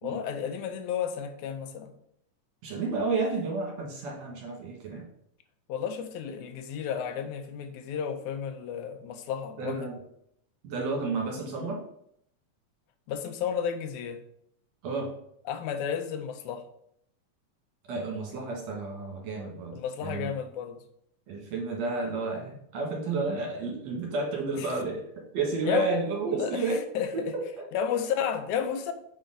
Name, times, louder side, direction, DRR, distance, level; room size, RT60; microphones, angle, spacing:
voice 1, 0.0-1.9 5.7-9.9 13.1-14.2 15.5-16.6 19.7-20.8 24.5-24.8 25.7-25.9 26.4-27.3 27.7-28.9, left 8 dB, 80° left, 8 dB, 2.1 m, -32 dB
voice 2, 2.6-5.1 9.6-10.0 10.6-11.8 14.8-15.1 17.9-20.3 21.3-25.0 25.3-26.8 27.1-27.2, right 3 dB, 65° right, -1 dB, 3.0 m, -31 dB
6.6 x 5.2 x 3.8 m, 0.71 s
omnidirectional pair, 3.4 m